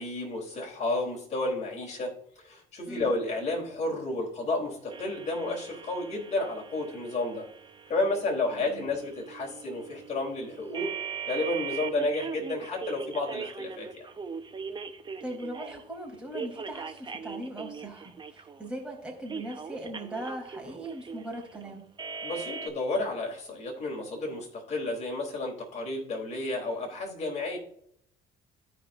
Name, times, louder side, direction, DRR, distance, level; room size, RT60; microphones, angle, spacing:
voice 1, 0.0-2.2 2.4-7.5 7.9-10.9 11.3-14.1 22.2-27.6, left 2 dB, 40° left, -1 dB, 3.6 m, -31 dB
voice 2, 2.9-3.2 8.5-8.9 15.2-21.9, right 1 dB, 5° right, -1 dB, 3.4 m, -39 dB
sound 1, 4.9-15.8 16.3-18.7 19.3-22.7, right 6 dB, 25° right, 0.9 m, -40 dB
14.5 x 5.1 x 2.6 m, 0.70 s
cardioid pair, 110°, 17 cm